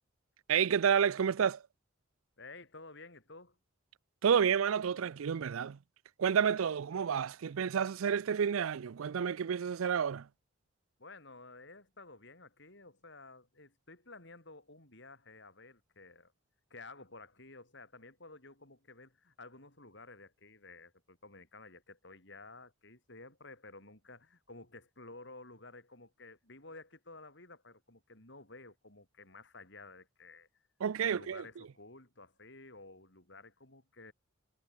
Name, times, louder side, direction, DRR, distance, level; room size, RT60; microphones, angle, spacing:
voice 1, 0.5-1.6 4.2-5.8 6.2-10.3 30.8-31.6, right 7 dB, 85° right, 0.4 m, -30 dB
voice 2, 2.4-3.6 11.0-16.3 16.7-30.5 31.1-34.1, left 3 dB, 60° left, 7.6 m, -53 dB
head